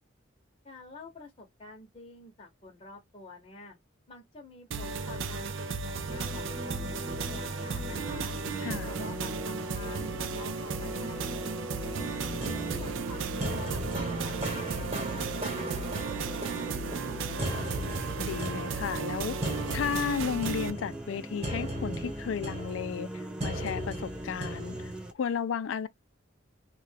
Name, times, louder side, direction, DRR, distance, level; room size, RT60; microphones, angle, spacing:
voice 1, 0.6-3.8 4.1-8.4 8.8-12.2 12.6-13.8 14.2-17.7, left 3 dB, 30° left, 0.8 m, -49 dB
sound 1, 4.7-20.7, right 4 dB, 70° right, 0.4 m, -35 dB
sound 2, 6.1-25.1, right 1 dB, 5° right, 0.4 m, -42 dB
voice 2, 8.6-8.9 18.2-19.4 19.7-25.9, left 7 dB, 80° left, 0.4 m, -34 dB
sound 3, 12.2-25.1, equal, 30° right, 1.1 m, -37 dB
2.4 x 2.2 x 3.3 m
head